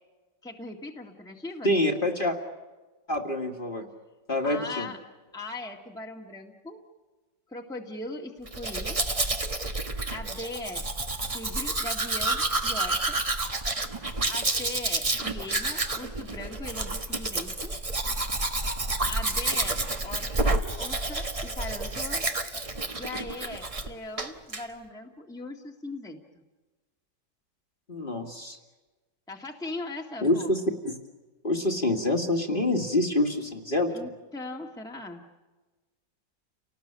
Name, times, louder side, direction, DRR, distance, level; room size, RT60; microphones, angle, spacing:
voice 1, 0.4-1.7 4.4-5.0 5.3-6.8 7.5-9.0 10.1-10.8 11.3-13.2 14.3-17.7 19.1-19.8 20.0-22.2 23.0-26.4 29.3-30.5 33.9-35.2, left 2 dB, ahead, 1 dB, 1.8 m, -39 dB
voice 2, 1.6-2.4 3.1-3.9 4.3-4.9 27.9-28.6 30.2-31.0 31.4-34.1, left 1 dB, 30° left, 2 dB, 2.2 m, -26 dB
Domestic sounds home sounds, 8.5-23.9 24.2-24.6, right 2 dB, 20° right, 1.2 m, -29 dB
30.0 x 19.0 x 8.8 m, 1.2 s
omnidirectional pair, 1.9 m